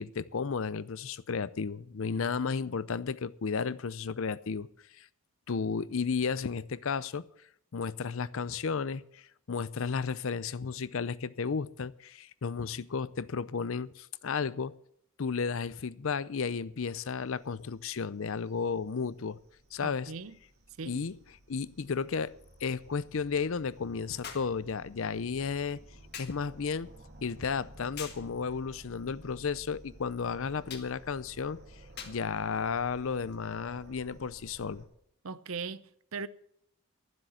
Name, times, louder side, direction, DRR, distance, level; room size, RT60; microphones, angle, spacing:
voice 1, 0.0-4.7 4.9-5.1 5.5-7.3 7.7-14.7 15.2-19.4 19.7-20.1 20.9-21.2 21.5-22.4 22.6-25.8 26.2-26.9 27.2-31.6 32.0-34.9, left 5 dB, 65° left, 0.5 m, -33 dB
sound 1, 17.2-34.8, right 1 dB, 45° right, 2.7 m, -54 dB
voice 2, 19.8-20.4 20.8-21.0 35.2-36.3, right 5 dB, 70° right, 0.7 m, -39 dB
sound 2, 20.5-20.6 24.2-24.6 26.1-26.4 28.0-28.3 30.7-31.0 32.0-32.3 33.3-33.4, left 7 dB, 45° left, 1.6 m, -43 dB
12.5 x 7.7 x 9.1 m
head